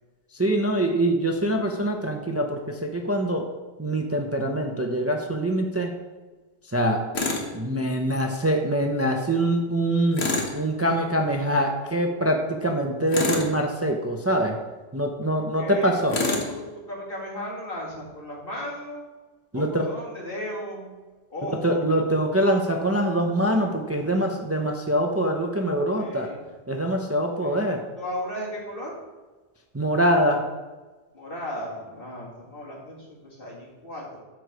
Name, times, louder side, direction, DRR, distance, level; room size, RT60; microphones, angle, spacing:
voice 1, 0.3-3.5 3.8-5.9 6.7-7.0 7.5-14.6 14.9-16.2 19.5-19.9 21.5-26.3 26.7-27.8 29.7-30.4, right 1 dB, 15° right, 3 dB, 0.7 m, -24 dB
Tools, 7.1-7.5 10.1-10.6 13.1-13.6 16.1-16.5, left 3 dB, 80° left, 1.6 m, -26 dB
voice 2, 15.4-19.0 19.5-21.0 21.3-21.9 25.9-26.4 27.4-27.6 28.0-29.0 31.1-34.2, left 1 dB, 55° left, -3 dB, 2.5 m, -36 dB
13.0 x 4.6 x 5.1 m, 1.3 s
omnidirectional pair, 1.1 m